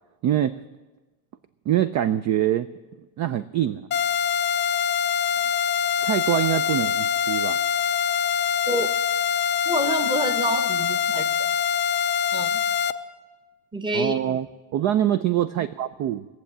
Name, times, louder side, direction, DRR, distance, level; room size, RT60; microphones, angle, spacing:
voice 1, 0.2-0.6 1.7-2.7 3.2-3.9 6.0-7.6 13.9-14.5 14.7-16.3, right 11 dB, 40° right, 14 dB, 0.4 m, -24 dB
sound 1, 3.9-12.9, left 8 dB, 25° left, 0.4 m, -24 dB
voice 2, 9.6-11.6 12.3-12.6 13.7-14.2, right 1 dB, 10° right, 9 dB, 1.0 m, -27 dB
20.5 x 7.2 x 8.8 m, 1.2 s
supercardioid pair, 125°, 47 cm